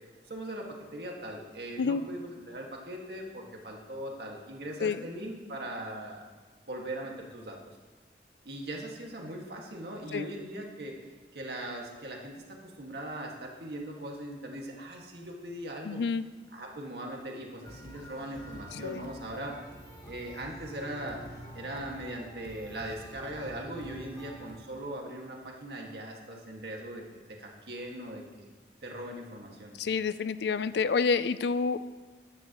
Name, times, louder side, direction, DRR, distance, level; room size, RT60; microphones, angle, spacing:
voice 1, 0.3-6.3 6.7-7.8 8.5-11.0 11.3-16.0 16.5-19.6 20.0-21.2 21.5-28.5 28.8-29.7, right 1 dB, 65° right, 0 dB, 1.9 m, -40 dB
voice 2, 15.8-16.3 18.7-19.1 29.8-31.8, left 5 dB, 70° left, 15 dB, 0.4 m, -28 dB
sound 1, 17.6-24.5, equal, 20° left, 1.6 m, -47 dB
14.5 x 10.5 x 3.0 m, 1.4 s
head